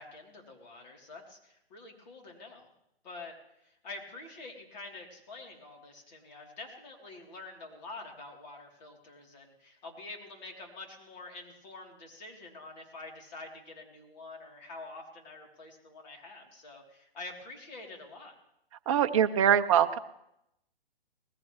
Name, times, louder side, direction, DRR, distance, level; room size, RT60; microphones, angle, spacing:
voice 1, 0.0-2.7 3.0-18.3, left 2 dB, 45° left, 0 dB, 3.3 m, -47 dB
voice 2, 18.9-20.0, right 9 dB, 35° right, 6 dB, 0.6 m, -23 dB
19.5 x 14.5 x 3.2 m, 0.81 s
hypercardioid pair, 150°, 30 cm